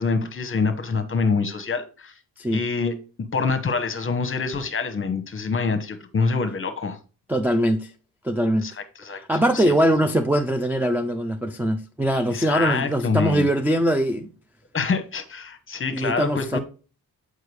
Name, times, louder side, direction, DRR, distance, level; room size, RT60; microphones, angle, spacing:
voice 1, 0.0-2.1 2.5-2.9 3.3-7.0 8.6-9.8 12.3-13.5 14.7-16.6, left 4 dB, 30° left, 0.9 m, -26 dB
voice 2, 7.3-7.9 8.2-8.7 9.1-14.3 15.9-16.6, equal, 5° right, 0.3 m, -22 dB
6.6 x 4.7 x 3.2 m
cardioid pair, 100°, 40 cm